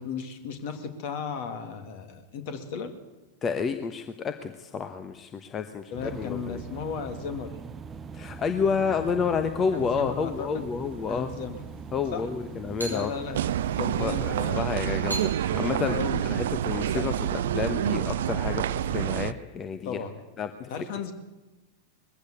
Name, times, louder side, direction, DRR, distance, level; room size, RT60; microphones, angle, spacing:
voice 1, 0.0-2.9 5.9-7.5 9.7-10.6 11.1-11.6 12.1-12.3 12.8-13.4 13.8-15.1 15.5-16.2 16.9-17.1 19.8-20.1 20.7-21.1, left 6 dB, 50° left, 8 dB, 2.6 m, -35 dB
voice 2, 3.4-6.6 8.1-11.3 11.9-13.1 13.9-16.0 16.2-20.0 20.4-20.5, left 6 dB, 25° left, 9 dB, 1.1 m, -30 dB
sound 1, 5.9-14.5, right 6 dB, 20° right, 0.7 m, -42 dB
sound 2, 9.7-17.4, right 2 dB, 90° left, 5.3 m, -44 dB
sound 3, 13.3-19.3, right 11 dB, 60° right, 0.6 m, -28 dB
21.0 x 15.0 x 8.3 m, 1.1 s
figure-of-eight pair, 90°, 0 cm